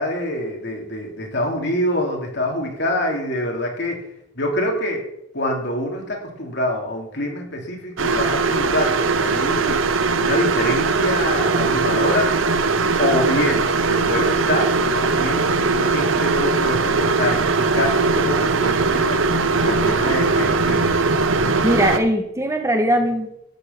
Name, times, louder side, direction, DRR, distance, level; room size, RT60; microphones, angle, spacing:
voice 1, 0.0-4.0 4.3-5.0 5.3-9.8 10.1-12.4 13.0-19.2 19.5-20.9, left 1 dB, 60° left, 1 dB, 3.4 m, -25 dB
sound 1, 8.0-22.0, right 4 dB, 85° right, 1.0 m, -20 dB
voice 2, 21.6-23.3, right 1 dB, 15° right, 4 dB, 1.4 m, -20 dB
13.0 x 6.8 x 8.4 m, 0.78 s
head